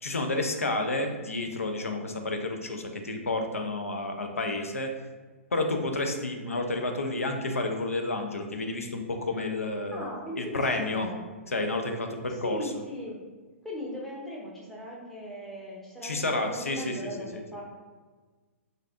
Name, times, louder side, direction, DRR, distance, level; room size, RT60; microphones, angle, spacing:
voice 1, 0.0-4.9 5.5-10.1 10.4-11.1 11.5-12.7 16.0-17.4, left 2 dB, 85° left, 4 dB, 0.4 m, -30 dB
voice 2, 9.9-11.2 12.3-13.2 13.6-17.6, equal, 5° left, -5 dB, 0.7 m, -38 dB
3.2 x 2.5 x 2.4 m, 1.4 s
figure-of-eight pair, 115°, 7 cm